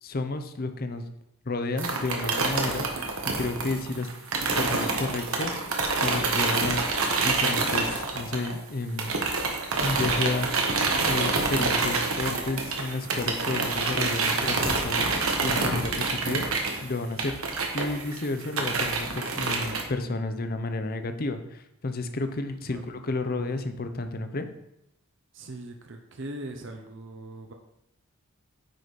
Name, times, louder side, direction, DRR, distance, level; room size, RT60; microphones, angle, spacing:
voice 1, 0.0-1.0 1.5-3.0 3.3-4.1 4.6-5.6 6.0-6.9 7.2-9.1 9.8-10.8 11.0-15.1 15.4-16.5 16.8-17.3 17.7-24.5, left 2 dB, 45° left, 8 dB, 0.6 m, -31 dB
sound 1, 1.8-8.7 9.0-19.8, right 3 dB, 80° right, 1.3 m, -27 dB
voice 2, 22.7-23.0 25.3-27.5, right 1 dB, 60° right, 3 dB, 0.7 m, -40 dB
9.1 x 5.0 x 4.1 m, 0.81 s
head